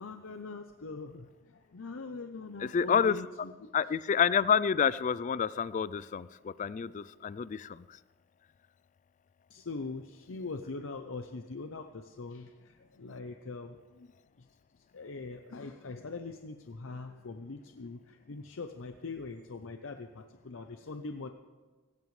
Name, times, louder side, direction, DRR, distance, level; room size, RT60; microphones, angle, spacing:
voice 1, 0.0-3.7 9.5-14.1 14.4-14.5 14.7-21.3, left 3 dB, 80° left, 6 dB, 0.7 m, -42 dB
voice 2, 2.6-3.2 3.7-8.0, left 7 dB, 40° left, 18 dB, 0.3 m, -28 dB
17.5 x 16.5 x 3.2 m, 1.3 s
head